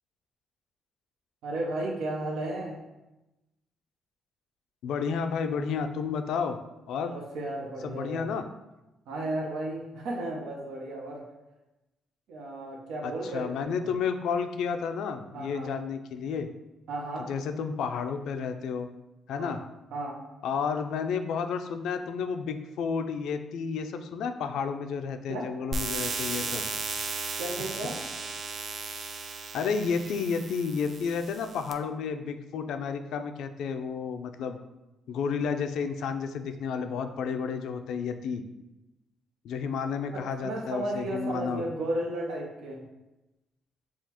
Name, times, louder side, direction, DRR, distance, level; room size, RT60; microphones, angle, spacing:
voice 1, 1.4-2.8 7.1-8.3 9.1-11.2 12.3-13.9 15.3-15.7 16.9-17.3 19.4-19.6 19.9-20.2 25.3-25.5 27.4-28.0 40.1-42.8, right 1 dB, 85° right, -1 dB, 0.7 m, -34 dB
voice 2, 4.8-6.6 6.9-7.1 7.8-8.4 13.0-16.5 17.3-18.9 19.3-19.6 20.4-26.6 29.5-34.6 35.1-38.4 39.4-41.6, left 6 dB, 80° left, 7 dB, 0.4 m, -31 dB
sound 1, 25.7-31.7, right 4 dB, 50° right, 0.4 m, -35 dB
7.1 x 2.4 x 2.9 m, 1.0 s
cardioid pair, 90°, 0 cm